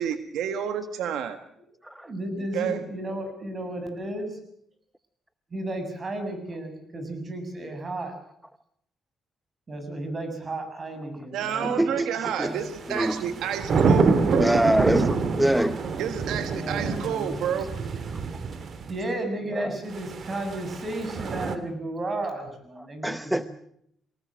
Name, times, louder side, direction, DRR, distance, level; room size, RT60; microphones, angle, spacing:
voice 1, 0.0-1.4 2.5-2.8 11.3-14.5 16.0-17.7, right 9 dB, 85° right, 9 dB, 1.6 m, -30 dB
voice 2, 2.0-4.3 5.5-8.1 9.7-12.7 16.5-17.5 18.9-23.4, right 1 dB, 35° right, 7 dB, 7.0 m, -34 dB
voice 3, 11.6-12.1 12.4-12.5 12.9-13.2 14.4-15.8 19.5-19.8 23.0-23.4, right 1 dB, 5° right, 12 dB, 0.8 m, -24 dB
sound 1, 12.6-18.9 19.9-21.6, right 4 dB, 55° right, 2.2 m, -26 dB
23.0 x 19.0 x 7.6 m, 0.72 s
cardioid pair, 90°, 0 cm